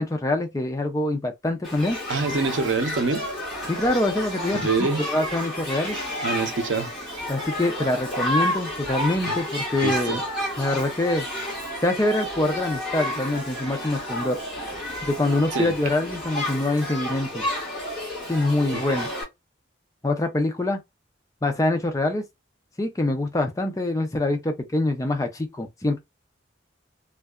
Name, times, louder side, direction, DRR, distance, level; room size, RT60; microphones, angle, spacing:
voice 1, 0.0-2.0 3.7-6.0 7.3-10.2 10.6-11.3 11.8-14.4 15.1-17.4 18.3-19.1 20.0-20.8 21.4-22.2 22.8-26.0, left 2 dB, 15° left, 0.4 m, -25 dB
Shout / Human group actions, 1.6-19.2, left 1 dB, ahead, 1.1 m, -31 dB
voice 2, 2.1-3.3 4.5-5.0 6.2-6.9 9.3-9.4 9.8-10.2 15.5-15.7 18.9-19.0, right 3 dB, 80° right, 0.6 m, -25 dB
2.7 x 2.2 x 2.2 m
head